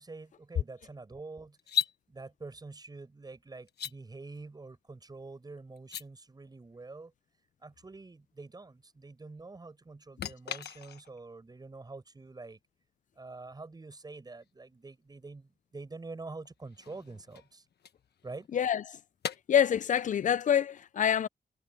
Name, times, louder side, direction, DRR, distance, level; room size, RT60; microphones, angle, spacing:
voice 1, 0.0-1.6 2.1-7.1 7.6-12.6 13.2-17.6 18.2-18.5, right 3 dB, 25° right, 5.8 m, -46 dB
sound 1, 1.6-2.0 3.7-3.9 5.8-6.1 10.2-11.2 14.4-14.5 16.4-18.6 19.2-19.4, left 8 dB, 70° left, 1.3 m, -37 dB
voice 2, 19.5-21.3, left 9 dB, 50° left, 0.4 m, -26 dB
wide cardioid pair, 170°, 17 cm